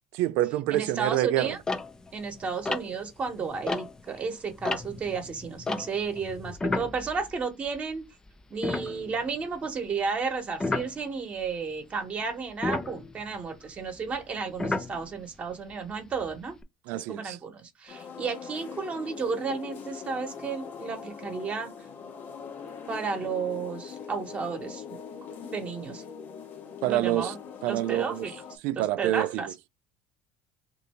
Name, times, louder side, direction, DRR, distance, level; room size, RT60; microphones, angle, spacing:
voice 1, 0.1-1.6 16.9-17.4 26.8-27.4 27.6-28.3 28.6-29.5, right 15 dB, 75° right, 0.3 m, -27 dB
voice 2, 0.7-1.6 2.1-8.0 8.5-16.5 16.9-21.7 22.9-24.8 25.4-26.0 26.8-27.3 27.7-28.4 28.7-29.5, right 5 dB, 35° right, 1.0 m, -33 dB
sound 1, 1.6-4.2 4.5-8.0 8.3-8.4 8.6-9.5 10.6-11.0 12.5-15.4 16.0-16.6, left 3 dB, 15° left, 0.4 m, -33 dB
sound 2, 17.9-28.6, left 6 dB, 50° left, 0.7 m, -42 dB
2.6 x 2.6 x 4.3 m
supercardioid pair, 100°, 4 cm